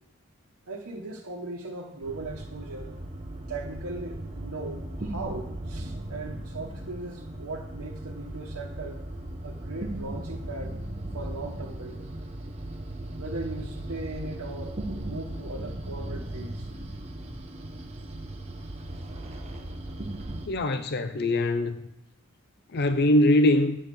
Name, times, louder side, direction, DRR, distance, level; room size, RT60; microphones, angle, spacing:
voice 1, 0.7-2.9 3.5-9.0 9.4-10.8 11.1-12.1 13.2-16.7, right 2 dB, 80° right, 1.1 m, -38 dB
sound 1, 2.0-20.5, right 1 dB, 30° right, 0.8 m, -37 dB
voice 2, 20.5-21.8 22.7-23.8, left 1 dB, 45° left, 0.5 m, -22 dB
9.6 x 4.3 x 6.7 m
head